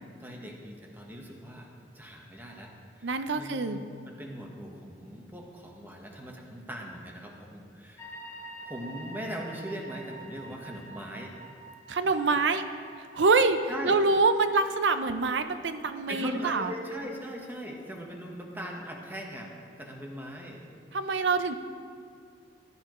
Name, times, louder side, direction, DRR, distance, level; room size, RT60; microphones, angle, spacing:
voice 1, 0.2-8.1 8.6-11.3 11.9-12.0 13.7-14.0 16.1-19.5 19.8-20.6, equal, 10° right, 0 dB, 1.2 m, -40 dB
voice 2, 3.0-3.8 11.9-12.7 13.1-13.6 13.8-16.7 20.9-21.5, right 3 dB, 80° right, 10 dB, 0.6 m, -25 dB
sound 1, 8.0-14.8, right 2 dB, 15° left, 1.0 m, -47 dB
15.0 x 11.0 x 3.1 m, 2.3 s
head